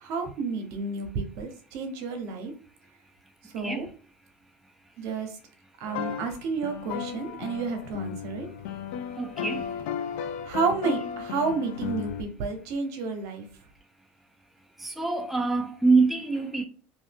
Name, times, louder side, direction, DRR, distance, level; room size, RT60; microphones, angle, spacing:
voice 1, 0.0-2.5 3.5-3.9 5.0-5.3 5.8-8.5 10.5-13.4, right 4 dB, 65° right, 0.9 m, -30 dB
sound 1, 5.9-12.2, left 8 dB, 80° left, 0.4 m, -35 dB
voice 2, 9.2-9.6 15.0-16.6, right 3 dB, 5° right, 0.4 m, -24 dB
2.6 x 2.6 x 3.4 m
supercardioid pair, 115°, 6 cm